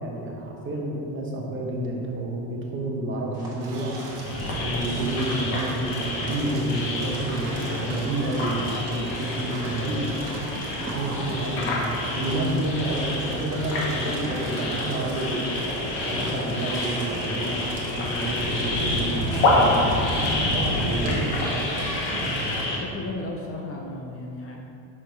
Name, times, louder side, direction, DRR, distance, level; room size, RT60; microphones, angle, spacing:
voice 1, 0.0-3.9 4.6-10.1 10.8-15.4 16.0-17.5 17.9-19.7 20.5-21.7, right 1 dB, 30° right, -1 dB, 1.0 m, -29 dB
sound 1, 3.3-19.0, right 1 dB, 10° right, 1.4 m, -40 dB
Crackle, 3.6-22.6, right 2 dB, 75° right, 1.4 m, -38 dB
sound 2, 4.2-22.8, left 1 dB, 80° left, 1.3 m, -28 dB
voice 2, 21.1-21.6 22.7-24.6, left 2 dB, 35° left, 0 dB, 0.6 m, -35 dB
6.4 x 3.8 x 4.5 m, 2.7 s
cardioid pair, 125°, 42 cm